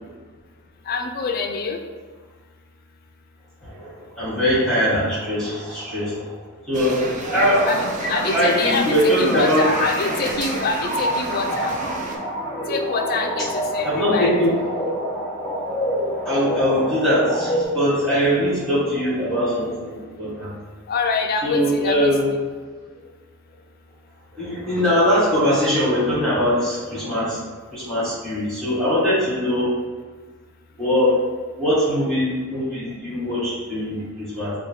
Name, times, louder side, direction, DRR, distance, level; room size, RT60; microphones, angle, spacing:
voice 1, 0.9-1.8 7.7-11.7 12.7-14.3 20.9-22.1, left 4 dB, 40° left, 4 dB, 0.3 m, -25 dB
voice 2, 4.2-6.3 6.7-7.0 7.3-7.7 8.3-9.6 13.8-14.5 16.0-20.5 21.4-22.3 24.3-27.4 27.7-29.7 30.8-31.2 31.6-34.5, equal, 5° left, -12 dB, 1.2 m, -21 dB
sound 1, 6.7-12.2, right 2 dB, 35° right, 0.4 m, -30 dB
sound 2, 7.3-17.7, equal, 20° left, 0.8 m, -28 dB
4.2 x 2.2 x 3.2 m, 1.5 s
head